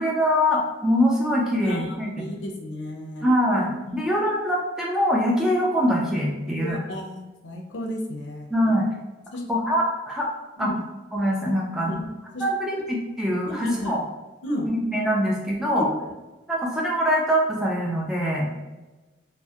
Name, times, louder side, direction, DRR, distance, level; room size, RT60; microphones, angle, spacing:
voice 1, 0.0-2.1 3.2-6.8 8.5-8.9 9.5-10.3 10.6-10.7 11.1-11.9 12.4-14.0 14.7-15.9 16.5-18.5, equal, 5° right, -3 dB, 0.3 m, -23 dB
voice 2, 1.6-3.3 3.9-4.1 6.6-8.5 9.3-9.4 10.6-10.8 11.8-12.1 12.3-12.4 13.4-14.0 14.4-14.7 15.7-15.9, left 1 dB, 75° left, 1 dB, 0.5 m, -32 dB
2.2 x 2.0 x 2.7 m, 1.1 s
head